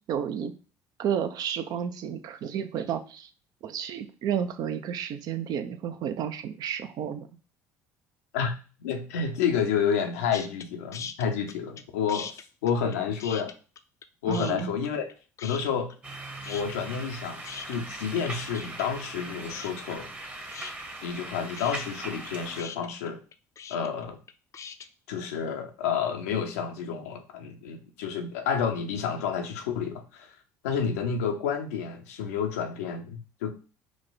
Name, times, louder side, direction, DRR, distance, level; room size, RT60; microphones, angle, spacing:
voice 1, 0.1-0.5 1.0-3.3 3.6-7.3 14.3-14.7, right 8 dB, 60° right, 9 dB, 0.5 m, -31 dB
voice 2, 8.8-13.5 14.2-15.1 15.4-16.0 16.4-17.4 17.7-20.1 21.0-23.2 23.7-24.2 25.1-30.3 30.6-33.5, left 7 dB, 90° left, 6 dB, 0.6 m, -30 dB
sound 1, 10.3-10.7 10.9-11.8 12.1-14.1 14.3-15.1 15.4-16.2 16.4-24.9, left 7 dB, 45° left, 0.4 m, -41 dB
sound 2, 16.0-22.6, right 2 dB, 20° right, 1.0 m, -40 dB
4.8 x 2.3 x 3.9 m, 0.36 s
hypercardioid pair, 70°, 8 cm